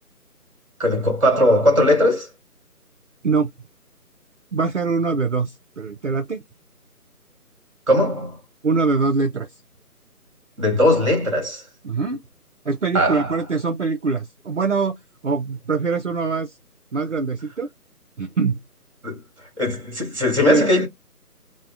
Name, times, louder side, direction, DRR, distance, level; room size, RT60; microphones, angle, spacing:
voice 1, 0.8-2.3 7.9-8.4 10.6-11.6 12.9-13.3 19.0-19.2 19.6-20.9, left 1 dB, 20° right, 1.1 m, -19 dB
voice 2, 4.5-6.4 8.6-9.5 11.8-12.2 12.7-15.0 15.2-16.5 16.9-17.7 18.2-18.6 20.5-20.6, right 4 dB, 50° right, 0.5 m, -23 dB
4.5 x 2.1 x 2.5 m
figure-of-eight pair, 160°, 47 cm